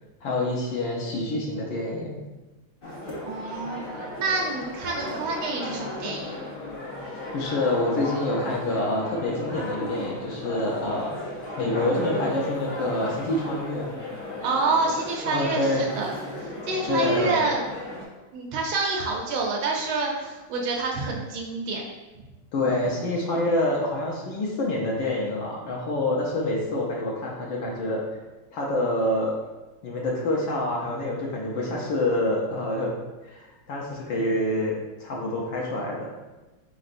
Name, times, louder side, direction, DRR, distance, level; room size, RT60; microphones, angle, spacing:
voice 1, 0.2-2.2 7.3-11.2 11.6-13.9 15.3-15.8 16.9-17.3 22.5-28.0 28.5-29.3 29.8-32.9 33.2-34.7 35.0-36.1, left 1 dB, 75° left, -3 dB, 1.4 m, -26 dB
sound 1, 2.8-18.0, left 1 dB, 60° left, 0.5 m, -36 dB
voice 2, 3.2-3.8 4.2-6.4 14.4-16.1 16.4-17.6 18.3-21.8, right 3 dB, 80° right, -1 dB, 1.4 m, -27 dB
4.2 x 3.9 x 2.5 m, 1.1 s
omnidirectional pair, 2.2 m